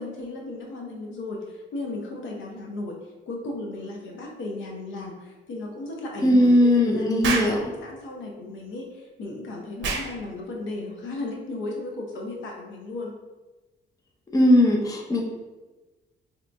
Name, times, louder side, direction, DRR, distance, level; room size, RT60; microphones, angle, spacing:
voice 1, 0.0-3.0 3.3-13.2, left 2 dB, 70° left, -1 dB, 0.7 m, -35 dB
voice 2, 6.2-7.6 14.3-15.2, left 1 dB, 15° left, 0 dB, 0.6 m, -18 dB
Explosion, 7.2-7.6 9.8-10.1, right 4 dB, 70° right, 0.6 m, -26 dB
2.9 x 2.5 x 3.3 m, 1.2 s
cardioid pair, 90°, 20 cm